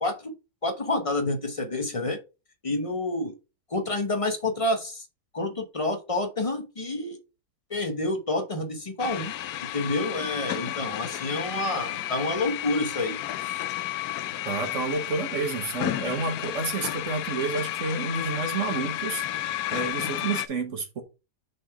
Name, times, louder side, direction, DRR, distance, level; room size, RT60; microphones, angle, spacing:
voice 1, 0.0-0.3 0.6-2.2 2.6-3.3 3.7-5.0 5.3-7.2 7.7-9.3 9.7-13.6, left 2 dB, 30° left, 0.7 m, -28 dB
sound 1, 9.0-20.5, left 13 dB, 70° left, 0.9 m, -32 dB
voice 2, 14.4-19.4 19.7-21.0, right 4 dB, 50° right, 1.1 m, -30 dB
6.4 x 3.5 x 4.7 m
omnidirectional pair, 2.0 m